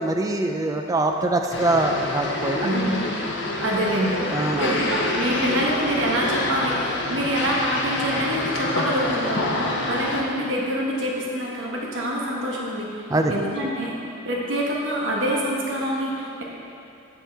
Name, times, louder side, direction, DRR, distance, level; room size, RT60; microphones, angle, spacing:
voice 1, 0.0-2.7 4.3-4.7 13.1-13.3, right 2 dB, 15° right, 4 dB, 0.4 m, -23 dB
sound 1, 1.5-10.2, left 2 dB, 65° left, 0.7 m, -27 dB
voice 2, 2.6-3.1 3.6-4.2 4.6-13.9 14.2-16.4, equal, 75° right, -3 dB, 1.2 m, -26 dB
7.1 x 7.0 x 3.4 m, 2.7 s
head